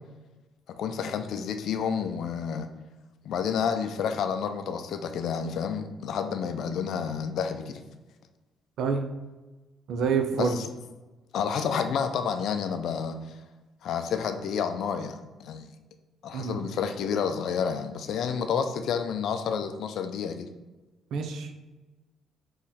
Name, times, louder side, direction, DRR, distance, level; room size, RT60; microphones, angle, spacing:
voice 1, 0.8-2.7 3.2-7.8 10.4-10.7 11.3-13.4 13.8-15.7 16.2-20.5, left 7 dB, 65° left, 8 dB, 0.4 m, -30 dB
voice 2, 9.9-10.6 16.3-16.6 21.1-21.5, right 5 dB, 70° right, 5 dB, 0.6 m, -27 dB
3.9 x 3.1 x 4.2 m, 1.2 s
cardioid pair, 120°, 0 cm